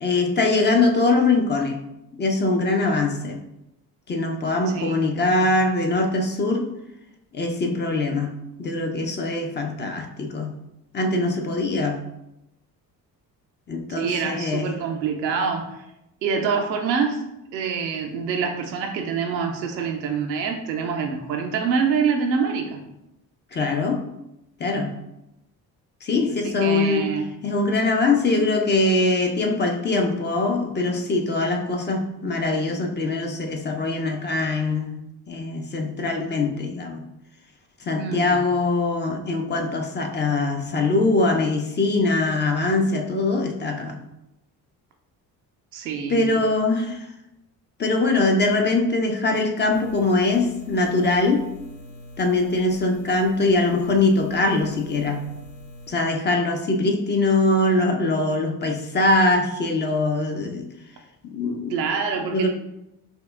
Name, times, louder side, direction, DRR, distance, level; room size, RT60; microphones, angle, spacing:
voice 1, 0.0-1.8 2.2-3.4 4.1-6.7 7.3-10.6 10.9-12.0 13.7-14.7 23.5-24.0 24.6-24.9 26.0-27.1 27.4-34.9 35.3-37.0 37.8-44.0 46.1-47.1 47.8-51.4 52.2-55.3 55.9-60.7 61.2-61.7 62.3-62.5, left 2 dB, 25° left, 3 dB, 0.4 m, -22 dB
voice 2, 13.9-15.7 16.2-17.2 17.5-22.8 26.4-27.3 38.0-38.4 45.7-46.4 61.7-62.5, right 6 dB, 90° right, 3 dB, 0.6 m, -26 dB
sound 1, 49.7-55.9, left 1 dB, 55° left, 0.9 m, -43 dB
5.3 x 2.0 x 2.3 m, 0.87 s
hypercardioid pair, 50°, 50 cm